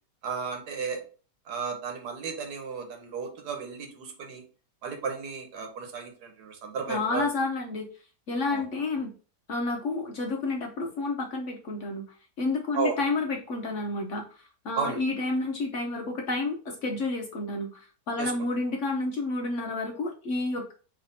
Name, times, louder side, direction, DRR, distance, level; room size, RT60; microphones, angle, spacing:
voice 1, 0.2-1.0 1.5-4.4 4.8-7.3 8.5-8.6 12.7-13.0 14.8-15.0 18.2-18.3, right 5 dB, 75° right, 4 dB, 1.5 m, -33 dB
voice 2, 6.9-7.9 8.3-9.1 9.5-12.0 12.4-20.7, left 3 dB, 55° left, 2 dB, 0.9 m, -30 dB
5.4 x 3.3 x 2.7 m, 0.37 s
omnidirectional pair, 1.8 m